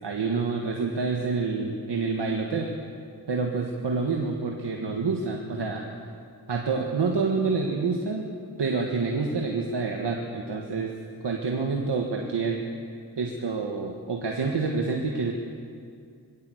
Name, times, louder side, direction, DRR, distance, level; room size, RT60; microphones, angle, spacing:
voice 1, 0.0-2.7 3.3-5.8 6.5-8.3 8.6-10.9 11.2-12.6 13.2-15.3, right 4 dB, 90° right, 0 dB, 1.7 m, -27 dB
21.5 x 16.0 x 7.9 m, 2.3 s
cardioid pair, 45°, 40 cm